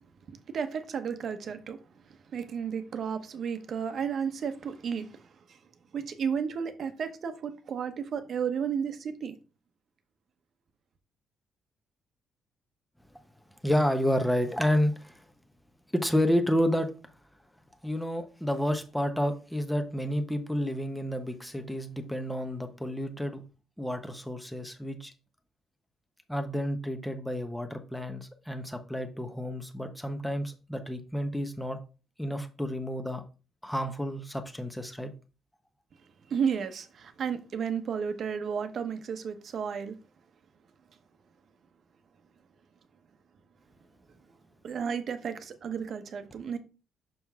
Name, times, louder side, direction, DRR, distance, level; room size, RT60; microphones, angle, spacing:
voice 1, 0.5-1.8 2.3-5.6 5.9-9.4 36.3-40.0 44.6-46.6, right 7 dB, 55° right, 1.0 m, -33 dB
voice 2, 13.6-15.2 15.9-16.9 17.8-23.4 23.8-25.1 26.3-31.8 32.2-33.2 33.6-35.1, equal, 5° left, 1.0 m, -30 dB
6.2 x 5.5 x 3.6 m
cardioid pair, 90°, 0 cm